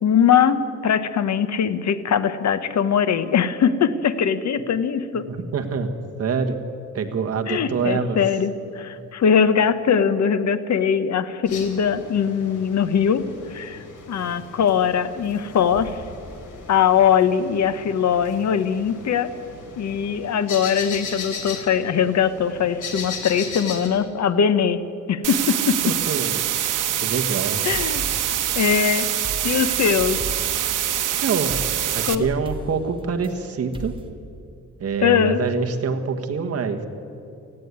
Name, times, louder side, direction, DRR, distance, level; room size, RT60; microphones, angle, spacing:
voice 1, 0.0-5.3 7.5-16.0 16.7-19.3 19.8-24.8 25.1-25.8 27.6-28.0 28.5-29.1 29.4-30.2 32.0-32.3 35.0-35.4, left 7 dB, 65° left, 12 dB, 1.1 m, -21 dB
voice 2, 5.3-6.6 6.9-8.2 25.8-26.4 27.0-27.6 31.2-31.6 31.9-33.9 34.8-36.8, right 5 dB, 50° right, 5 dB, 1.6 m, -25 dB
sound 1, 11.5-23.9, left 5 dB, 85° left, 3.4 m, -37 dB
sound 2, 25.2-32.2, right 11 dB, 90° right, 1.0 m, -24 dB
sound 3, 27.7-28.8 29.2-30.7 31.5-33.3 33.7-34.1, right 1 dB, 15° right, 1.8 m, -36 dB
18.5 x 15.0 x 9.5 m, 2.6 s
wide cardioid pair, 160°, 30 cm